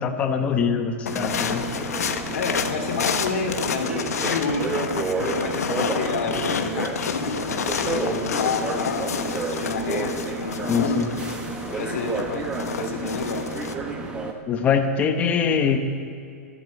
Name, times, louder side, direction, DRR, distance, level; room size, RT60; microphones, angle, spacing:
voice 1, 0.0-1.6 10.7-11.1 14.5-15.8, left 6 dB, 15° left, 4 dB, 1.0 m, -23 dB
sound 1, 1.1-13.7, left 7 dB, 90° left, 1.2 m, -30 dB
sound 2, 1.1-14.3, right 3 dB, 10° right, 1.1 m, -30 dB
voice 2, 2.3-11.0 11.8-12.5 12.7-13.5, left 4 dB, 65° left, -1 dB, 2.6 m, -30 dB
13.0 x 12.0 x 8.1 m, 2.6 s
hypercardioid pair, 160°, 8 cm